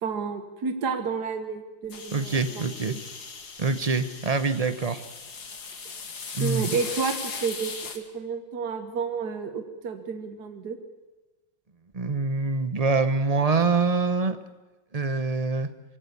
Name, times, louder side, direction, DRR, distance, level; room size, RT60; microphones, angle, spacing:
voice 1, 0.0-3.0 6.4-10.8, right 5 dB, 60° right, 8 dB, 2.0 m, -31 dB
sound 1, 1.9-8.0, left 5 dB, 55° left, 2.4 m, -38 dB
voice 2, 2.1-3.0 3.6-5.0 6.3-6.8 11.9-14.4 14.9-15.7, right 4 dB, 30° right, 11 dB, 0.8 m, -25 dB
22.5 x 17.0 x 8.4 m, 1.2 s
omnidirectional pair, 2.1 m